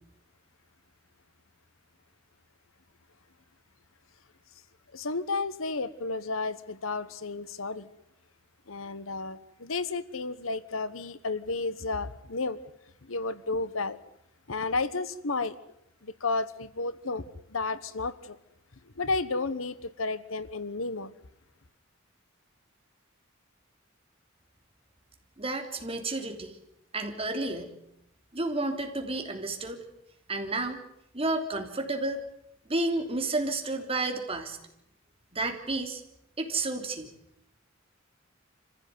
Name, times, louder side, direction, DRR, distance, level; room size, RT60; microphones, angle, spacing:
voice 1, 4.9-7.9 8.7-12.6 13.0-14.0 14.5-15.6 16.0-18.4 18.9-21.1, left 3 dB, 85° left, 1.2 m, -32 dB
voice 2, 25.4-26.6 26.9-27.7 28.3-29.8 30.3-30.8 31.1-32.2 32.7-34.6 35.3-36.0 36.4-37.1, right 2 dB, 30° right, 3.2 m, -31 dB
26.5 x 15.5 x 9.5 m
head